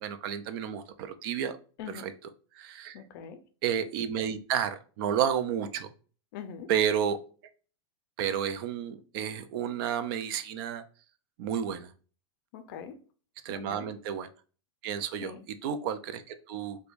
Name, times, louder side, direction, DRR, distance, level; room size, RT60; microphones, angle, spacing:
voice 1, 0.0-1.6 2.0-2.1 2.6-3.0 3.6-5.9 6.7-7.2 8.2-10.8 11.4-11.9 13.4-14.3 14.8-15.3 15.6-16.8, right 8 dB, 50° right, 0.4 m, -31 dB
voice 2, 2.9-3.4 6.3-6.7 12.5-13.0 13.5-13.9 15.2-15.5, left 7 dB, 50° left, 0.5 m, -42 dB
4.4 x 2.2 x 2.5 m
supercardioid pair, 150°, 15 cm